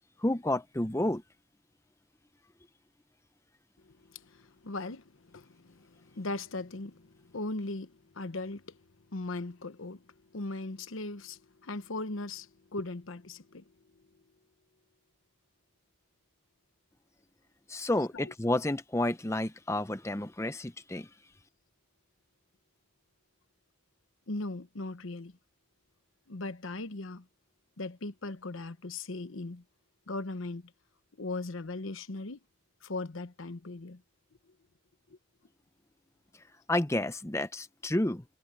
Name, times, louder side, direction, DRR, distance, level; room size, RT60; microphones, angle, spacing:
voice 1, 0.2-1.2 17.7-21.1 36.7-38.2, left 1 dB, 15° left, 0.6 m, -30 dB
voice 2, 3.9-8.8 9.1-10.0 10.3-13.6 18.1-18.3 24.3-25.3 26.3-27.2 27.8-29.6 30.1-30.7 31.2-32.4 32.8-34.0, left 2 dB, 80° left, 1.0 m, -39 dB
head